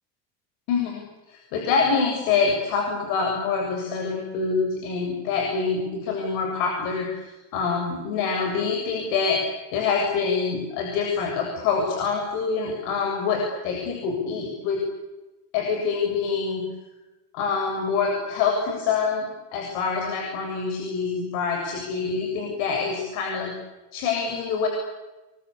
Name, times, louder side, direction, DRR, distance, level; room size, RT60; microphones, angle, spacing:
voice 1, 0.7-9.4 9.7-14.8 15.5-16.7 17.3-19.3 19.5-23.5 23.9-24.7, left 5 dB, 60° left, 1 dB, 7.6 m, -26 dB
29.0 x 23.5 x 8.7 m, 1.1 s
cardioid pair, 175°, 35 cm